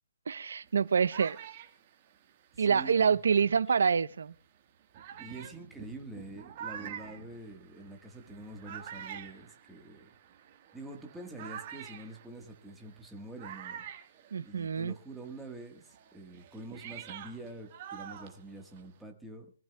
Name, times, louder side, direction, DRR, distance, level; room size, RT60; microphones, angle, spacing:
voice 1, 0.3-1.4 2.6-4.3 14.3-14.9, right 6 dB, 65° right, 0.7 m, -26 dB
sound 1, 0.6-3.7 4.3-4.4 4.9-15.0 15.2-19.0, right 9 dB, 25° right, 1.4 m, -47 dB
voice 2, 2.6-3.2 5.2-10.1 10.7-13.9 14.4-19.5, right 2 dB, ahead, 1.3 m, -46 dB
24.5 x 15.0 x 2.2 m
hypercardioid pair, 175°, 0 cm